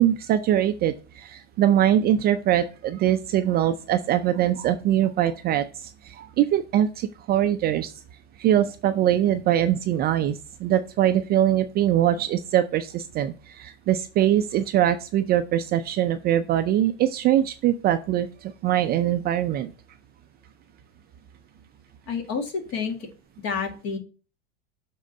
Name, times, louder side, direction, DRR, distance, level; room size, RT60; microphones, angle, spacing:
voice 1, 0.0-7.9 8.4-19.7, right 11 dB, 30° right, 9 dB, 0.4 m, -22 dB
voice 2, 22.1-23.0 23.4-24.0, left 5 dB, 45° left, 4 dB, 2.1 m, -29 dB
7.2 x 3.8 x 5.2 m, 0.34 s
hypercardioid pair, 115°, 35 cm